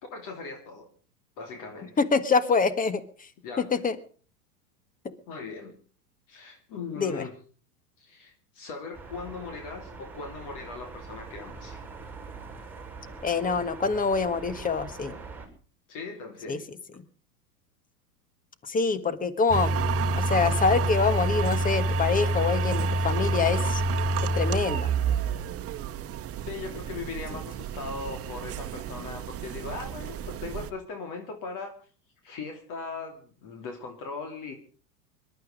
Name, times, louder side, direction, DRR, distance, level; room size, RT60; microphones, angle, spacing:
voice 1, 0.1-0.9 1.4-2.0 3.4-3.8 5.3-5.7 6.3-7.3 8.0-11.8 15.9-16.7 26.4-31.8 32.2-34.5, left 4 dB, 40° left, 5 dB, 3.0 m, -39 dB
voice 2, 2.0-3.0 3.6-4.0 5.0-5.1 7.0-7.2 13.2-15.2 16.5-16.6 18.7-19.7 20.1-23.8 24.3-24.9, left 4 dB, 15° left, 14 dB, 1.5 m, -25 dB
sound 1, 8.9-15.5, right 4 dB, 5° right, 6.2 m, -43 dB
sound 2, 19.5-30.7, right 3 dB, 30° right, 1.4 m, -28 dB
21.5 x 12.0 x 5.1 m, 0.42 s
hypercardioid pair, 105°, 48 cm